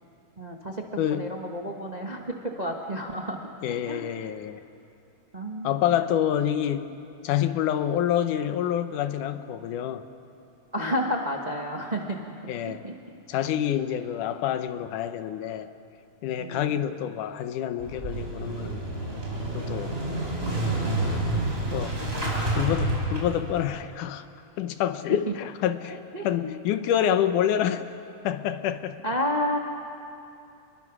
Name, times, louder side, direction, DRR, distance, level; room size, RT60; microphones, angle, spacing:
voice 1, 0.4-0.8 1.1-3.4 3.9-4.1 5.3-5.8 10.7-12.3 12.6-13.2 16.4-16.8 21.9-22.5 26.1-26.5 29.0-29.6, equal, 75° right, 1 dB, 0.3 m, -31 dB
voice 2, 1.0-1.3 3.6-4.6 5.6-6.9 7.2-10.0 12.5-12.8 13.3-15.7 16.2-18.8 19.5-20.0 21.7-22.0 22.6-24.3 24.6-26.0 26.2-27.8 28.2-29.0, left 10 dB, 80° left, 10 dB, 2.4 m, -27 dB
Motorcycle / Engine starting, 17.8-23.6, right 2 dB, 20° right, 4.7 m, -29 dB
29.5 x 21.5 x 6.2 m, 2.7 s
omnidirectional pair, 3.6 m